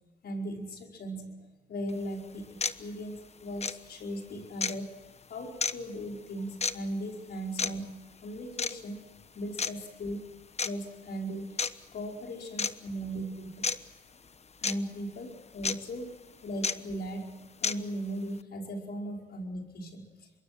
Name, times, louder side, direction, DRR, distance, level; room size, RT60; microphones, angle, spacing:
voice 1, 0.2-5.0 5.3-9.0 9.4-10.2 10.6-11.6 11.9-13.7 14.6-20.0, equal, 60° left, 1 dB, 5.2 m, -38 dB
sound 1, 1.9-2.0 2.6-2.8 3.6-3.8 4.6-4.8 5.6-5.7 6.6-6.8 7.6-7.7 8.6-8.8 9.6-9.7 10.6-10.7 11.6-11.7 12.6-12.7 13.6-13.8 14.6-14.7 15.6-15.8 16.6-16.7 17.6-17.8, left 5 dB, 35° left, 1.1 m, -29 dB
26.0 x 22.5 x 6.1 m, 1.2 s
supercardioid pair, 70°, 18 cm